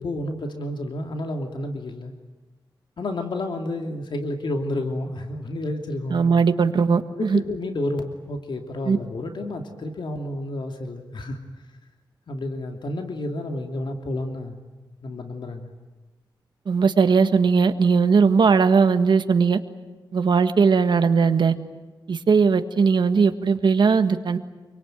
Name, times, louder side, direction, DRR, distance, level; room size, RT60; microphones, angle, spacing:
voice 1, 0.0-2.1 3.0-6.2 7.2-11.4 12.3-14.6 15.0-15.7, left 1 dB, 75° left, 4 dB, 2.8 m, -30 dB
voice 2, 6.1-7.4 8.8-9.0 16.6-19.6 20.1-21.5 22.1-24.4, right 5 dB, 70° right, 8 dB, 1.6 m, -19 dB
27.0 x 24.0 x 9.2 m, 1.2 s
wide cardioid pair, 135°, 8 cm